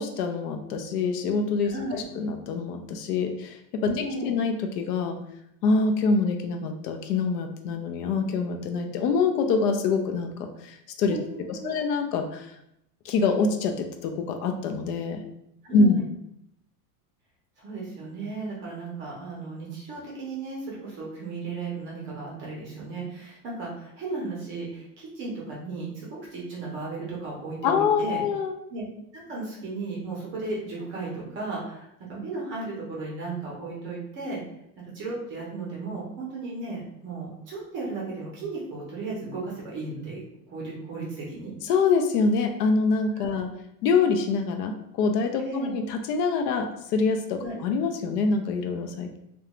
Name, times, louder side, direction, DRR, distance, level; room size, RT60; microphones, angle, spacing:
voice 1, 0.0-5.2 5.6-11.2 11.5-12.5 13.0-15.2 15.7-16.0 27.6-28.6 41.6-43.5 43.8-49.2, left 4 dB, 75° left, 5 dB, 0.6 m, -25 dB
voice 2, 1.7-2.0 3.9-4.3 11.1-11.8 15.6-16.0 17.6-28.2 28.7-28.8 29.1-34.4 34.9-40.2 40.5-41.5 43.2-43.4 45.4-45.7 47.4-47.6, right 3 dB, 25° right, -4 dB, 0.6 m, -35 dB
2.4 x 2.2 x 2.9 m, 0.77 s
supercardioid pair, 170°, 48 cm